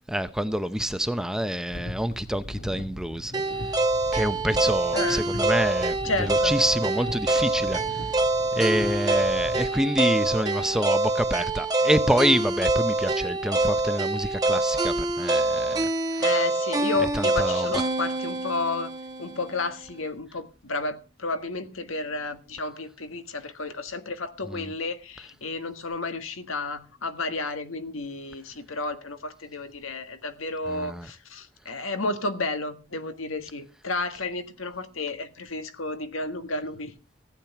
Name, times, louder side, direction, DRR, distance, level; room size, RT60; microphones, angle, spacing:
voice 1, 0.1-3.7 4.1-8.1 8.5-16.2 17.1-17.7 24.5-24.7 30.7-31.1, equal, 5° right, 0.7 m, -27 dB
sound 1, 1.7-9.6, left 1 dB, 60° left, 1.9 m, -39 dB
sound 2, 3.3-19.4, right 2 dB, 20° right, 1.2 m, -25 dB
voice 2, 4.9-5.3 6.0-6.5 16.2-18.9 19.2-36.9, left 3 dB, 85° left, 1.7 m, -32 dB
15.5 x 8.7 x 5.8 m
head